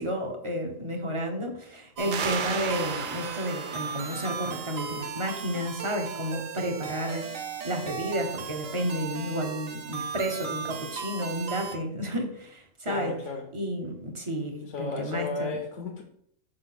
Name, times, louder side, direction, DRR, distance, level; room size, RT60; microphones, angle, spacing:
voice 1, 0.0-7.3 7.6-13.1 13.5-15.5, equal, 25° right, 3 dB, 0.9 m, -31 dB
voice 2, 2.0-2.4 12.8-13.5 14.7-16.0, left 4 dB, 70° left, 1 dB, 1.2 m, -34 dB
sound 1, 2.0-11.8, right 6 dB, 85° right, 1.2 m, -37 dB
sound 2, 2.1-5.5, right 6 dB, 55° right, 0.5 m, -36 dB
5.4 x 3.9 x 5.9 m, 0.68 s
omnidirectional pair, 1.3 m